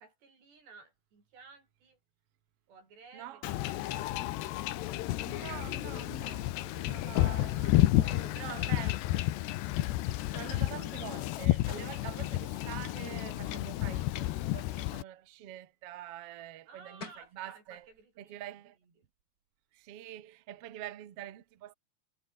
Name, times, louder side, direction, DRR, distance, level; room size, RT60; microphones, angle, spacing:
voice 1, 0.0-2.0 2.7-4.3 16.7-18.4 18.8-18.9, right 4 dB, 60° right, 10.0 m, -56 dB
voice 2, 3.1-3.5 5.2-9.0 10.1-17.9 18.2-18.8 19.7-21.7, right 12 dB, 85° right, 1.3 m, -46 dB
Wind / Ocean / Boat Water vehicle, 3.4-15.0, left 16 dB, 75° left, 3.0 m, -31 dB
sound 1, 12.7-13.0 16.7-16.8 17.0-17.4, left 3 dB, 20° left, 3.8 m, -46 dB
omnidirectional pair, 5.4 m